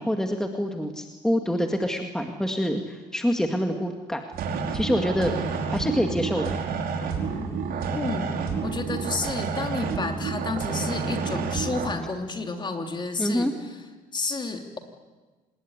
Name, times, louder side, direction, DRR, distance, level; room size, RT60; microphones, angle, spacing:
voice 1, 0.0-4.2 4.7-5.3 5.7-6.6 13.2-13.5, equal, 5° left, 4 dB, 2.0 m, -26 dB
sound 1, 4.3-11.9, right 5 dB, 65° right, 4.8 m, -29 dB
voice 2, 7.9-13.5 14.1-14.8, left 3 dB, 25° left, 5 dB, 3.2 m, -31 dB
27.0 x 20.5 x 9.8 m, 1.3 s
cardioid pair, 110°, 17 cm